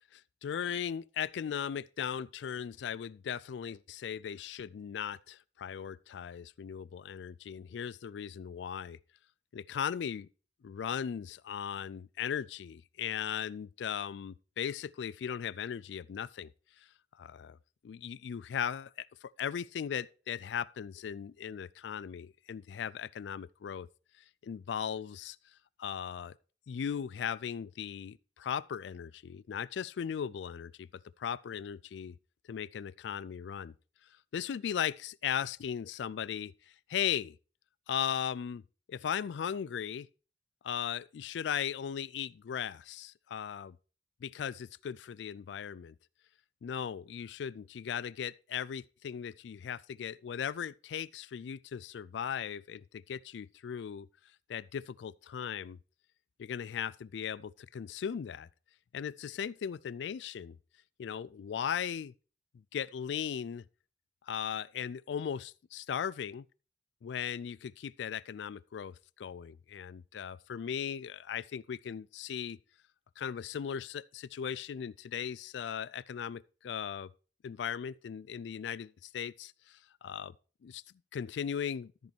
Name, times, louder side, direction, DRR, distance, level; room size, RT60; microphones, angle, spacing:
voice 1, 0.1-9.0 9.5-10.3 10.6-16.5 16.8-16.9 17.2-17.6 17.8-23.9 24.4-25.4 25.8-26.3 26.7-30.9 31.2-32.2 32.5-33.7 34.3-36.5 36.9-37.4 37.9-38.6 38.9-40.1 40.6-43.8 44.2-45.9 46.6-54.1 54.5-55.8 56.4-58.5 58.9-60.6 61.0-62.1 62.7-63.6 64.2-66.4 67.0-72.6 73.2-77.1 77.4-80.3 80.6-80.8 81.1-81.9, left 8 dB, 75° left, 0.3 m, -37 dB
13.5 x 5.3 x 4.4 m
head